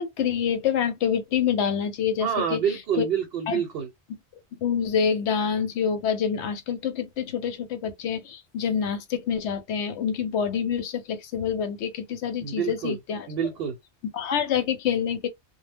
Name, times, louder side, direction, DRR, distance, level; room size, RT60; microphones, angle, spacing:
voice 1, 0.0-2.6 3.0-3.1 3.5-3.6 4.6-13.3 14.1-15.3, left 7 dB, 80° left, 0.9 m, -26 dB
voice 2, 2.2-3.9 12.4-13.0 13.3-13.8, right 7 dB, 65° right, 0.8 m, -27 dB
2.1 x 2.0 x 3.3 m
omnidirectional pair, 1.2 m